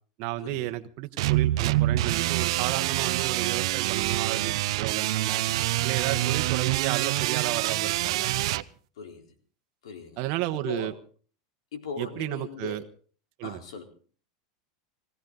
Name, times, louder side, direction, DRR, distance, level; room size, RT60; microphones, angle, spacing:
voice 1, 0.2-5.4 5.8-8.3 10.2-10.9 12.0-12.8 13.4-13.6, right 16 dB, 50° right, 7 dB, 1.2 m, -33 dB
sound 1, 1.2-8.6, right 16 dB, 75° right, 0.7 m, -26 dB
voice 2, 9.8-10.2 10.7-10.9 11.7-12.8 13.4-13.8, left 5 dB, 85° left, 4 dB, 4.0 m, -38 dB
20.5 x 16.5 x 4.0 m, 0.43 s
supercardioid pair, 135°, 3 cm